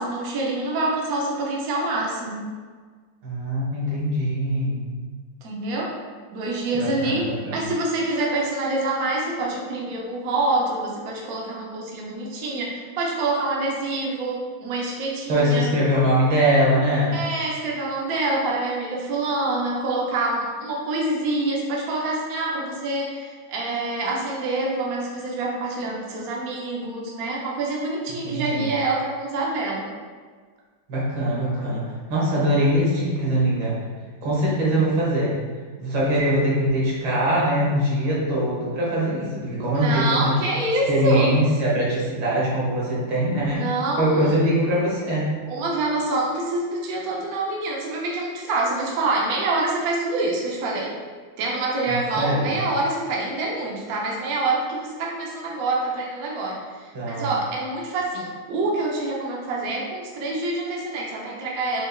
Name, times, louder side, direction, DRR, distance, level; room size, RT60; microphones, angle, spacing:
voice 1, 0.0-2.5 5.4-5.9 6.3-15.7 17.1-29.9 39.8-41.3 43.5-44.3 45.5-50.9 51.4-61.8, right 2 dB, 65° right, -2 dB, 0.9 m, -26 dB
voice 2, 3.2-4.8 6.7-7.6 15.3-17.2 28.2-28.7 30.9-33.8 34.2-35.4 35.8-40.3 40.9-43.7 44.0-45.3 51.9-52.6 57.0-57.3, equal, 80° right, -6 dB, 2.0 m, -22 dB
5.1 x 3.3 x 2.3 m, 1.5 s
omnidirectional pair, 2.2 m